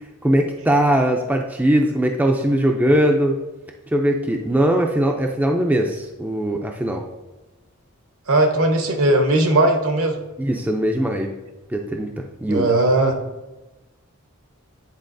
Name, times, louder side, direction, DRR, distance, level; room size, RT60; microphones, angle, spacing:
voice 1, 0.2-3.4 3.9-7.0 10.4-11.3 11.7-12.7, right 1 dB, 5° right, 2 dB, 0.3 m, -20 dB
voice 2, 8.3-10.2 12.5-13.2, right 2 dB, 70° right, 4 dB, 0.9 m, -18 dB
9.6 x 4.0 x 2.6 m, 1.1 s
head